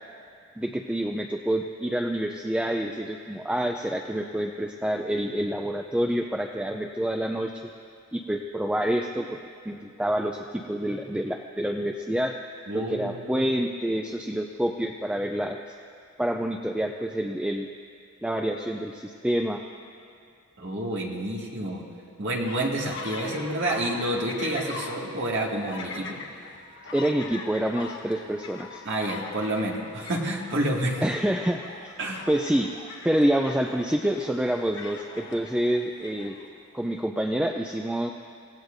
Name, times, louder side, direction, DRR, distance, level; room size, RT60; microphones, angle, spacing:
voice 1, 0.6-7.7 8.1-9.4 9.7-12.3 12.7-15.6 16.2-17.7 18.2-19.6 26.9-28.8 31.0-31.9 32.3-32.7 33.0-36.4 36.7-38.1, right 1 dB, 5° right, 3 dB, 0.4 m, -27 dB
voice 2, 12.7-13.5 20.6-21.9 22.2-26.2 28.9-31.0 32.0-32.3, right 1 dB, 55° right, -2 dB, 2.1 m, -29 dB
sound 1, 22.4-36.5 37.0-37.1, left 4 dB, 55° left, 1.4 m, -42 dB
27.0 x 17.0 x 2.7 m, 2.4 s
head